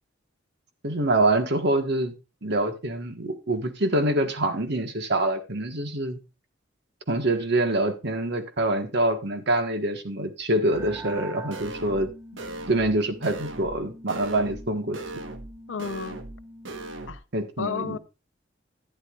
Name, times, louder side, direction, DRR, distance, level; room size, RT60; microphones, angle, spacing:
voice 1, 0.8-2.1 2.4-6.2 7.1-12.1 12.7-15.0 17.3-18.0, right 1 dB, 60° right, 1.5 m, -25 dB
sound 1, 10.7-17.0, right 1 dB, 15° right, 0.9 m, -44 dB
sound 2, 11.5-12.1 12.4-12.9 13.2-13.8 14.1-14.7 14.9-15.5 15.8-16.4 16.6-17.2, right 2 dB, 80° right, 1.3 m, -38 dB
voice 2, 15.7-16.2 17.1-17.2 17.6-18.0, left 6 dB, 75° left, 0.7 m, -32 dB
11.5 x 10.0 x 2.4 m
head